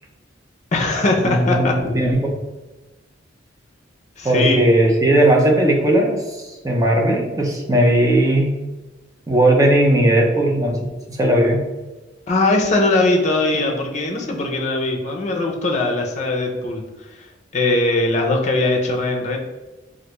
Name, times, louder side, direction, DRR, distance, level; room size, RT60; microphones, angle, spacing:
voice 1, 0.7-1.7 4.2-4.6 12.3-16.8 17.2-17.3 17.5-19.4, left 2 dB, 40° left, 1 dB, 0.6 m, -20 dB
voice 2, 1.2-2.4 4.2-6.2 6.6-8.5 9.3-11.6, right 1 dB, 20° right, 0 dB, 0.5 m, -17 dB
3.3 x 2.5 x 3.0 m, 1.1 s
head